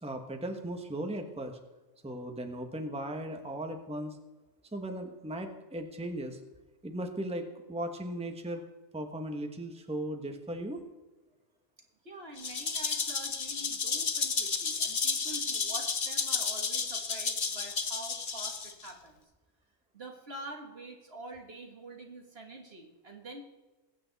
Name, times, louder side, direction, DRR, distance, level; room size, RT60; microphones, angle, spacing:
voice 1, 0.0-1.6 2.0-4.2 4.7-6.4 6.8-8.6 8.9-10.8, right 1 dB, 5° right, 5 dB, 1.1 m, -37 dB
voice 2, 12.0-19.2 19.9-23.4, right 2 dB, 50° right, 1 dB, 1.8 m, -46 dB
Rattle (instrument), 12.4-18.9, left 5 dB, 40° left, 1.0 m, -32 dB
21.5 x 8.7 x 4.1 m, 1.2 s
omnidirectional pair, 1.4 m